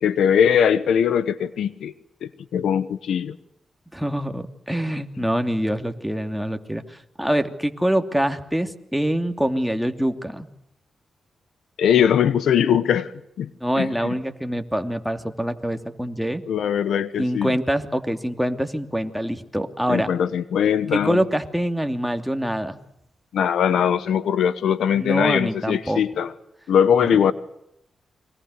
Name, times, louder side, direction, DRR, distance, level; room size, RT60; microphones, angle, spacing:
voice 1, 0.0-1.9 2.2-3.4 11.8-13.1 13.4-13.5 13.8-14.1 16.5-17.6 19.9-21.2 23.3-26.3 26.7-27.3, left 8 dB, 85° left, 16 dB, 1.1 m, -21 dB
voice 2, 3.9-10.5 13.6-16.4 17.2-20.1 20.9-22.8 24.9-26.0 27.0-27.2, equal, ahead, 6 dB, 2.8 m, -25 dB
30.0 x 23.5 x 6.7 m, 0.78 s
cardioid pair, 60°, 0 cm